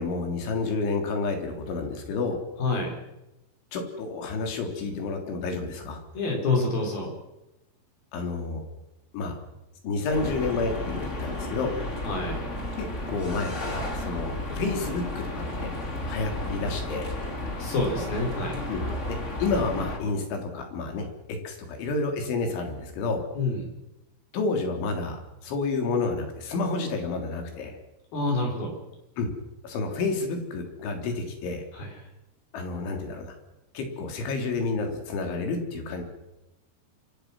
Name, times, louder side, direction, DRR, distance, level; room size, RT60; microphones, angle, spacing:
voice 1, 0.0-2.4 3.7-6.0 8.1-8.6 9.1-9.4 9.8-11.8 12.8-15.7 16.1-17.1 18.7-18.8 19.1-23.2 24.3-27.8 29.2-29.3 29.6-31.6 32.5-33.3 33.8-36.0, left 3 dB, 85° left, 4 dB, 5.8 m, -30 dB
voice 2, 2.6-2.9 6.1-7.1 12.0-12.4 14.5-14.6 17.6-18.6 23.3-23.6 28.1-28.7 31.7-31.9, left 2 dB, 55° left, 1 dB, 6.7 m, -27 dB
sound 1, 10.1-20.0, left 1 dB, 20° left, 2.6 m, -33 dB
27.0 x 25.0 x 6.2 m, 0.96 s
omnidirectional pair, 5.3 m